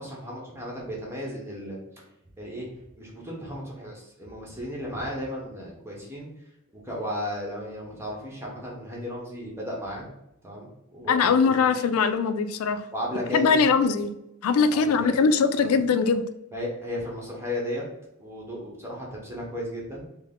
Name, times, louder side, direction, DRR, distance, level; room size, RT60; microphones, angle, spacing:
voice 1, 0.0-1.8 2.4-2.7 3.0-6.3 6.8-10.1 10.4-11.7 12.9-13.6 14.7-15.1 15.6-15.7 16.5-17.8 18.2-20.0, left 1 dB, 10° right, -3 dB, 0.9 m, -34 dB
voice 2, 11.1-12.9 13.3-14.1 14.4-16.2, left 5 dB, 85° left, 11 dB, 0.4 m, -21 dB
4.2 x 2.0 x 3.6 m, 0.83 s
head